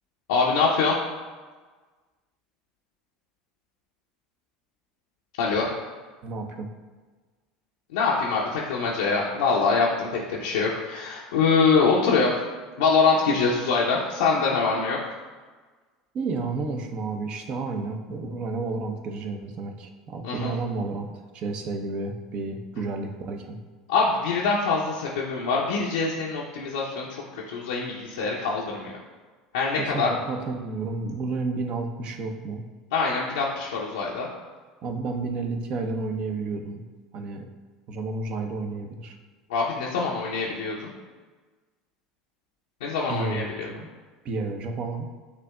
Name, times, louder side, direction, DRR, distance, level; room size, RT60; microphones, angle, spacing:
voice 1, 0.3-1.0 5.4-5.7 7.9-12.4 12.8-15.0 20.2-20.5 23.9-27.1 27.3-29.0 29.5-30.1 32.9-34.3 39.5-40.9 42.8-43.7, left 4 dB, 75° left, -5 dB, 0.5 m, -24 dB
voice 2, 6.2-6.7 16.1-21.1 21.3-23.6 29.8-32.6 34.8-36.8 37.1-37.5 37.9-39.2 43.1-43.9 44.2-45.1, right 3 dB, 45° right, 4 dB, 0.6 m, -31 dB
8.1 x 2.8 x 2.3 m, 1.4 s
hypercardioid pair, 75°, 2 cm